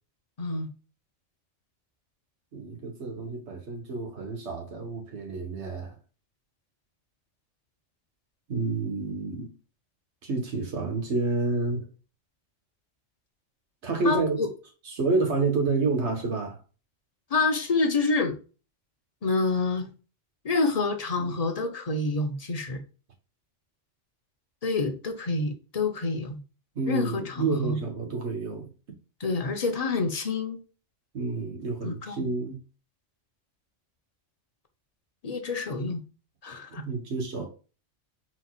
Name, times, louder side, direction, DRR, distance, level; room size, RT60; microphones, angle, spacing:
voice 1, 0.4-0.7 14.0-14.5 17.3-18.4 19.2-19.9 20.4-22.8 24.6-26.4 26.9-27.8 29.2-30.6 31.8-32.3 35.2-36.0 36.4-36.8, left 3 dB, 35° left, 0.8 m, -27 dB
voice 2, 2.5-5.9 8.5-9.5 10.2-11.9 13.8-14.4 14.8-16.6 21.2-21.4 26.7-29.0 31.1-32.6 36.7-37.5, right 3 dB, 65° right, 1.6 m, -29 dB
4.2 x 4.1 x 2.4 m
omnidirectional pair, 1.3 m